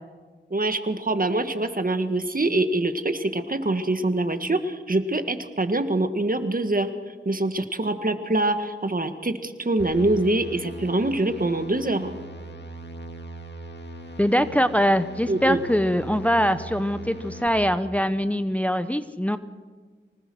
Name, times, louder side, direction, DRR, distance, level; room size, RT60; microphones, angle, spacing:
voice 1, 0.5-6.9 7.2-12.1 15.3-15.6, right 2 dB, 45° right, 8 dB, 1.7 m, -24 dB
sound 1, 9.8-17.5, right 1 dB, 60° left, 2.4 m, -40 dB
voice 2, 14.2-19.4, equal, 5° left, 11 dB, 0.8 m, -23 dB
25.0 x 19.0 x 6.3 m, 1.5 s
wide cardioid pair, 60°, 20 cm